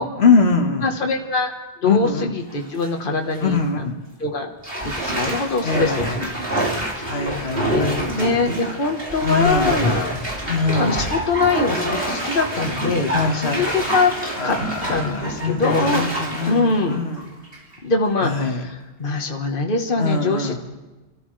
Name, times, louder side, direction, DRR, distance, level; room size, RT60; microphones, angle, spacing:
voice 1, 0.0-0.9 1.8-2.3 3.4-3.9 5.6-6.2 7.1-8.3 9.2-9.7 10.5-11.0 13.0-13.7 14.4-17.2 18.2-18.6 20.0-20.6, left 4 dB, 85° left, 2 dB, 1.7 m, -22 dB
voice 2, 0.8-1.5 1.8-3.9 4.2-4.5 4.8-6.3 7.0-14.1 14.4-14.6 14.9-16.1 16.4-17.0 17.8-20.7, left 3 dB, 60° left, 2 dB, 1.5 m, -23 dB
Bathtub (filling or washing), 2.5-2.9 3.3-3.4 4.6-17.8 18.2-18.3, right 1 dB, 65° right, 3.2 m, -26 dB
29.0 x 13.5 x 3.3 m, 1.2 s
omnidirectional pair, 1.0 m